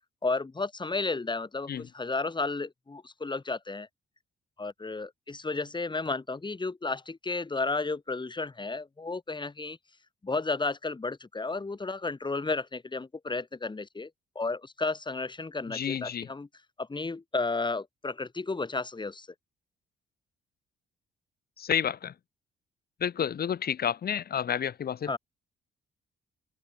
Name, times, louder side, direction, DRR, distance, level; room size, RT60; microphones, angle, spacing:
voice 1, 0.2-3.9 4.6-9.8 10.2-14.1 14.4-16.5 16.8-19.3 25.1-25.2, left 3 dB, 25° left, 5.9 m, -33 dB
voice 2, 15.7-16.3 21.6-22.1 23.0-25.2, left 8 dB, 50° left, 1.7 m, -30 dB
open air
cardioid pair, 90°, 20 cm